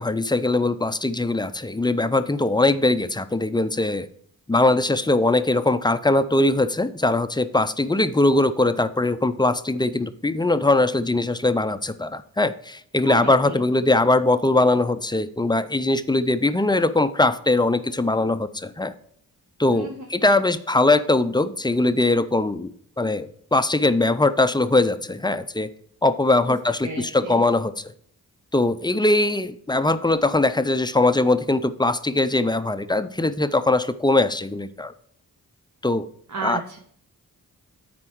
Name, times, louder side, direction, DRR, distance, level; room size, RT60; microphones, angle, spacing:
voice 1, 0.0-4.1 4.5-18.9 19.6-25.7 26.0-27.8 28.5-34.9 35.8-36.1 36.4-36.6, left 2 dB, 10° left, 12 dB, 0.5 m, -21 dB
voice 2, 13.1-13.6 19.7-20.1 26.5-26.6 26.8-27.4 36.3-36.8, right 4 dB, 50° right, 2 dB, 1.0 m, -33 dB
9.7 x 4.3 x 4.6 m, 0.63 s
cardioid pair, 55°, 38 cm